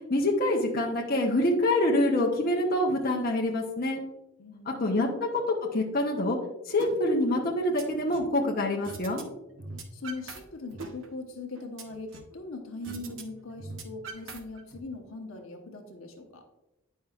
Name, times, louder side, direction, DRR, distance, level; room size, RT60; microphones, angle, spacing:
voice 1, 0.1-4.0 4.7-5.1 5.7-6.4 6.7-9.2, left 1 dB, 40° left, -2 dB, 0.8 m, -26 dB
voice 2, 4.4-5.2 9.9-16.4, left 3 dB, 65° left, 4 dB, 0.9 m, -40 dB
sound 1, 6.8-6.9 7.3-8.3 8.8-9.2 9.5-10.4 10.7-12.4 12.8-13.2 13.5-14.8, right 3 dB, 60° right, 0.8 m, -42 dB
9.1 x 5.4 x 2.4 m, 0.94 s
head